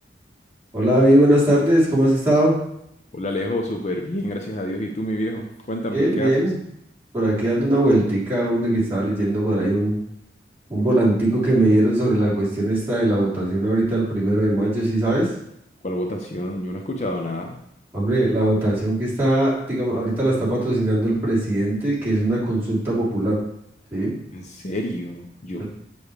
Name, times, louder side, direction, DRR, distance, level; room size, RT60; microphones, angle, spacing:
voice 1, 0.7-2.6 5.9-6.6 7.1-10.0 10.7-15.3 17.9-23.4 23.9-24.1 25.6-25.7, right 1 dB, 15° right, -8 dB, 3.0 m, -20 dB
voice 2, 3.1-6.3 15.8-17.6 24.3-25.6, left 1 dB, 40° left, 2 dB, 0.7 m, -28 dB
6.9 x 6.9 x 3.2 m, 0.76 s
head